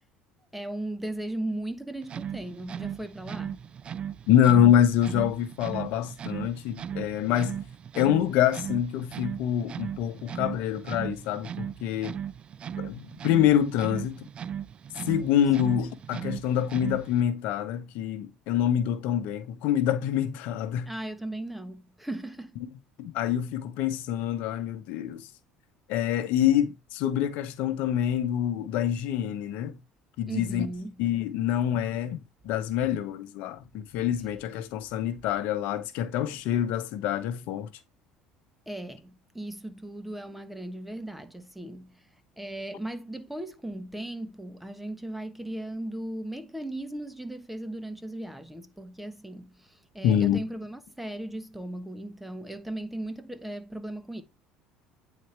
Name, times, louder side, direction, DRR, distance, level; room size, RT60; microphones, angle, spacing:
voice 1, 0.5-3.7 15.6-15.7 20.8-22.6 30.3-31.0 38.7-42.1 42.4-54.2, right 1 dB, 5° right, 1.1 m, -37 dB
sound 1, 2.0-17.3, right 9 dB, 40° right, 0.3 m, -37 dB
voice 2, 4.3-7.6 7.9-12.2 12.8-14.3 15.1-20.9 23.0-25.3 25.9-29.8 30.2-30.7 31.0-32.2 32.4-37.7 50.0-50.4, left 10 dB, 70° left, 0.9 m, -26 dB
9.1 x 4.2 x 3.3 m
supercardioid pair, 90°, 3 cm